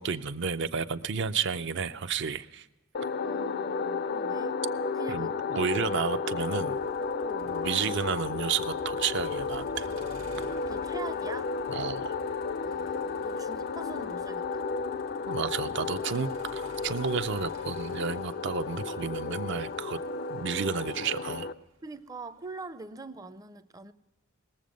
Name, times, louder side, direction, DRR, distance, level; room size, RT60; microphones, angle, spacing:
voice 1, 0.0-2.7 5.1-5.3 5.6-6.8 7.5-9.9 11.7-12.2 15.3-20.0 20.3-21.5, right 6 dB, 60° right, 11 dB, 0.6 m, -31 dB
sound 1, 2.9-21.5, left 4 dB, 55° left, 0.4 m, -33 dB
voice 2, 3.2-4.6 4.9-5.4 7.2-7.6 10.7-11.5 12.6-14.6 21.8-23.9, right 3 dB, 20° right, 12 dB, 0.5 m, -43 dB
Motor vehicle (road), 6.4-22.5, right 1 dB, 85° right, 1.3 m, -53 dB
20.0 x 7.5 x 5.2 m, 1.1 s
head